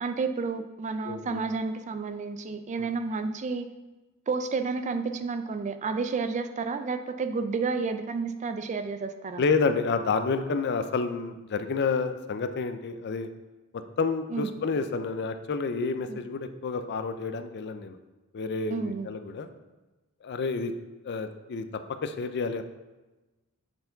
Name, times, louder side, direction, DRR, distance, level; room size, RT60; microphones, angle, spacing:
voice 1, 0.0-3.7 4.3-9.4 14.3-14.5 16.1-16.2 18.7-19.1, right 4 dB, 35° right, 9 dB, 0.4 m, -31 dB
voice 2, 1.0-1.4 2.8-2.9 9.4-13.3 14.0-18.0 18.3-19.5 20.2-20.7 21.0-21.7 22.0-22.6, left 4 dB, 50° left, 9 dB, 0.4 m, -29 dB
8.0 x 4.4 x 3.9 m, 1.1 s
head